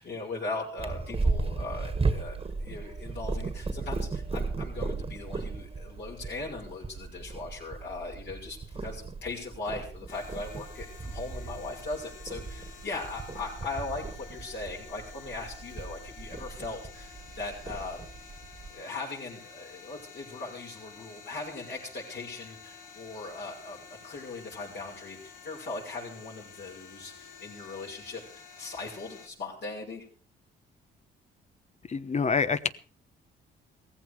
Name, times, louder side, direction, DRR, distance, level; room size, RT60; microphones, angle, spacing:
voice 1, 0.0-18.0 18.7-30.0, left 3 dB, 60° left, -4 dB, 6.2 m, -39 dB
Purr, 0.8-18.7, right 3 dB, 30° right, 1.7 m, -35 dB
sound 1, 10.1-29.3, left 6 dB, 90° left, 2.6 m, -50 dB
voice 2, 31.9-32.7, left 5 dB, 35° left, 14 dB, 1.1 m, -26 dB
16.5 x 15.0 x 4.9 m, 0.41 s
cardioid pair, 90°, 20 cm